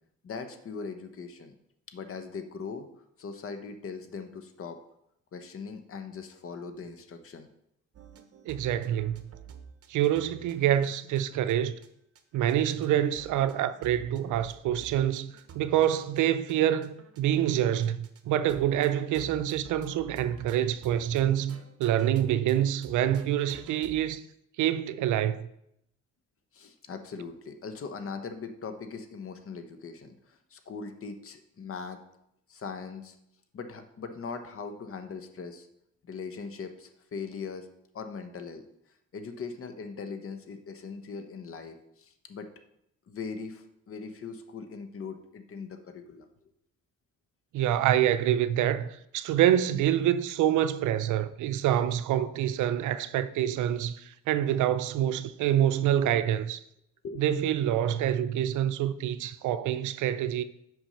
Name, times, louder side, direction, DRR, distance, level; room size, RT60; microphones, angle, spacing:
voice 1, 0.2-1.5 1.9-2.9 3.2-4.8 5.3-7.5 14.9-15.0 26.5-32.0 32.5-33.2 33.5-35.7 36.0-37.7 37.9-38.6 39.1-42.5 43.1-46.3 57.0-57.2 57.5-57.6, left 5 dB, 45° left, 1.0 m, -40 dB
sound 1, 7.9-11.5 11.8-11.9 12.2-17.5 17.8-18.2 18.5-22.6 22.8-24.2, right 7 dB, 50° right, 0.9 m, -50 dB
voice 2, 8.4-9.2 9.9-11.8 12.3-24.2 24.6-25.5 47.5-56.6 57.2-60.4, right 11 dB, 80° right, 0.5 m, -26 dB
6.0 x 5.4 x 5.6 m
cardioid pair, 90°, 30 cm